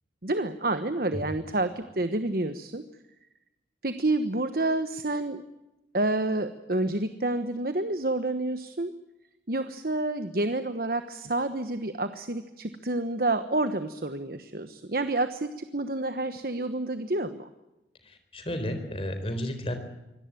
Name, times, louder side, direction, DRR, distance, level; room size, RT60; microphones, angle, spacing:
voice 1, 0.2-2.8 3.8-5.4 5.9-8.9 9.5-17.5, right 2 dB, 55° right, 9 dB, 1.2 m, -29 dB
voice 2, 18.0-19.7, left 1 dB, 30° left, 8 dB, 4.2 m, -32 dB
24.5 x 17.5 x 9.1 m, 0.96 s
head